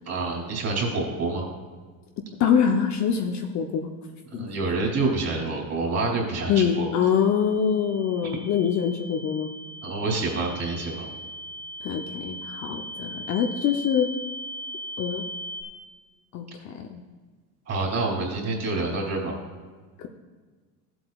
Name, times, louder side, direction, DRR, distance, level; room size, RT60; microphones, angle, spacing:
voice 1, 0.1-1.5 4.3-6.9 9.8-11.1 17.7-19.3, right 3 dB, 30° right, 0 dB, 2.8 m, -27 dB
voice 2, 2.4-3.9 4.3-4.5 6.5-9.5 11.8-14.1 15.0-15.2 16.3-17.0 20.0-20.1, left 7 dB, 35° left, 4 dB, 0.7 m, -24 dB
sound 1, 6.7-15.6, equal, 5° left, 0.8 m, -39 dB
14.0 x 7.9 x 2.3 m, 1.4 s
supercardioid pair, 120°, 47 cm